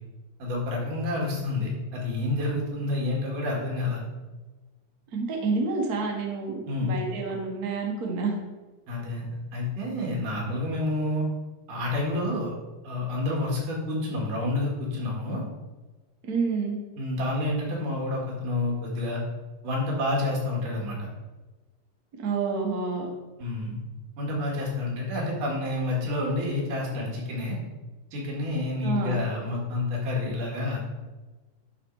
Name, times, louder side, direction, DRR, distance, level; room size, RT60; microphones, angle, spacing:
voice 1, 0.4-4.0 6.7-6.9 8.9-9.2 9.5-11.3 11.7-12.5 12.8-15.4 17.0-19.2 19.6-21.1 23.4-23.8 24.2-27.6 28.1-30.8, left 2 dB, 85° right, -2 dB, 3.5 m, -29 dB
voice 2, 5.1-8.3 16.2-16.8 22.2-23.1 28.8-29.2, right 4 dB, 45° right, 0 dB, 1.2 m, -28 dB
11.0 x 4.3 x 4.7 m, 1.2 s
omnidirectional pair, 3.6 m